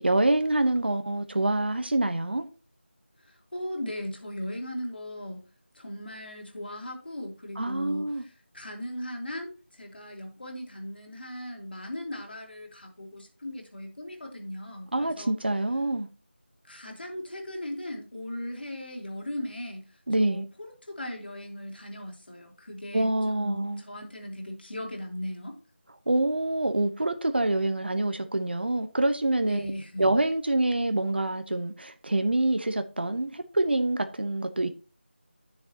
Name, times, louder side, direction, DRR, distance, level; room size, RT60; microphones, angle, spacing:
voice 1, 0.0-2.5 7.6-8.2 14.9-16.1 20.1-20.4 22.9-23.8 26.1-29.7 30.0-34.7, right 2 dB, 60° right, 1.1 m, -26 dB
voice 2, 3.2-5.5 5.7-15.3 16.6-25.6 29.5-30.0, left 1 dB, 55° left, 3.0 m, -38 dB
11.0 x 6.9 x 2.9 m
figure-of-eight pair, 175°, 6 cm